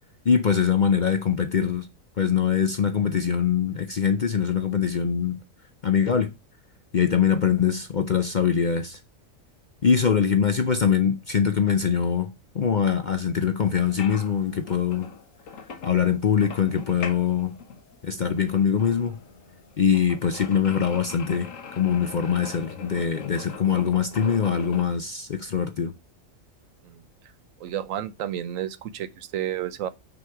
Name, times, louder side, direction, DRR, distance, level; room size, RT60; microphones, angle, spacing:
voice 1, 0.2-1.9 2.2-5.4 5.8-6.3 6.9-9.0 9.8-15.1 15.8-17.6 18.0-19.2 19.8-25.9, left 7 dB, 50° left, 0.6 m, -23 dB
sound 1, 13.8-24.8, left 5 dB, 70° left, 1.4 m, -41 dB
voice 2, 27.6-29.9, right 11 dB, 75° right, 1.1 m, -31 dB
6.5 x 4.9 x 5.7 m
omnidirectional pair, 1.4 m